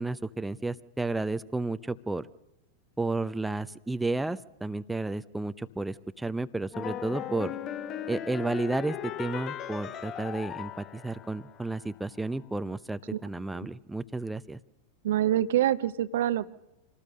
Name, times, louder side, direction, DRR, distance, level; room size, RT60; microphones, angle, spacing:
voice 1, 0.0-2.3 3.0-7.5 8.1-14.6, right 2 dB, 5° right, 12 dB, 0.7 m, -32 dB
sound 1, 6.7-11.9, left 9 dB, 35° left, 1.1 m, -38 dB
voice 2, 15.0-16.5, right 12 dB, 60° right, 15 dB, 0.8 m, -25 dB
27.0 x 18.5 x 6.5 m, 0.94 s
figure-of-eight pair, 90°, 0 cm